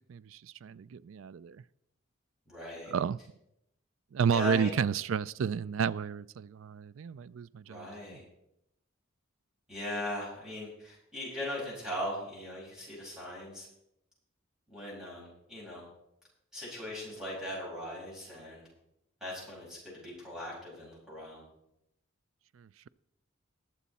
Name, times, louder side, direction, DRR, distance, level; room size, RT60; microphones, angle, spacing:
voice 1, 0.1-1.6 2.9-3.2 4.1-8.2 22.6-22.9, right 7 dB, 75° right, 0.4 m, -32 dB
voice 2, 2.5-2.9 4.3-4.7 7.6-8.2 9.7-13.7 14.7-15.9 16.5-18.6 19.2-21.5, left 1 dB, 5° right, 6.2 m, -39 dB
21.0 x 7.2 x 4.2 m
head